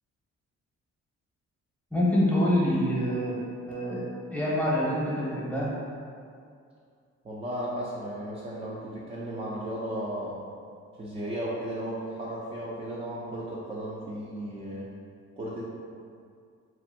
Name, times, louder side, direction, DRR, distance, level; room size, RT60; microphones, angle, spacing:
voice 1, 1.9-3.4 3.7-4.0 4.3-5.7, left 1 dB, 5° left, -7 dB, 0.8 m, -25 dB
voice 2, 7.2-10.4 11.0-14.9 15.4-15.6, right 1 dB, 20° right, -6 dB, 0.4 m, -35 dB
2.6 x 2.5 x 2.6 m, 2.3 s
cardioid pair, 90°, 30 cm